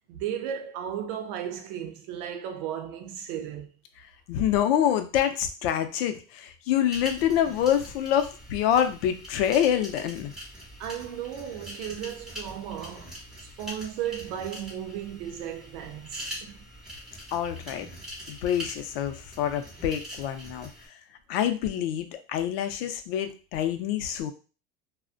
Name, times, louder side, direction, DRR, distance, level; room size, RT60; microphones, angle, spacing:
voice 1, 0.1-3.7 10.8-16.7, right 9 dB, 65° right, 0.6 m, -35 dB
voice 2, 4.3-10.3 17.3-17.9 18.3-20.7 21.3-24.3, left 10 dB, 85° left, 0.5 m, -26 dB
sound 1, 6.9-20.9, equal, ahead, 0.8 m, -43 dB
2.5 x 2.1 x 2.4 m
cardioid pair, 155°, 29 cm